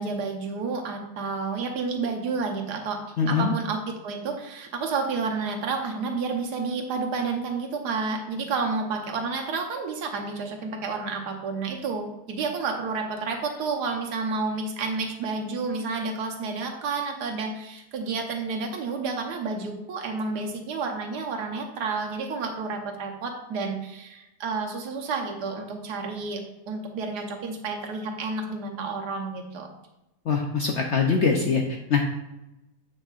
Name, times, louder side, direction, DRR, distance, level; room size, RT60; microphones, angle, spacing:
voice 1, 0.0-3.0 3.3-26.4 26.7-29.7, right 4 dB, 75° right, 2 dB, 1.5 m, -30 dB
voice 2, 3.2-3.5 30.3-31.6 31.9-32.0, left 5 dB, 65° left, 2 dB, 0.7 m, -22 dB
8.1 x 5.8 x 2.4 m, 0.94 s
omnidirectional pair, 1.8 m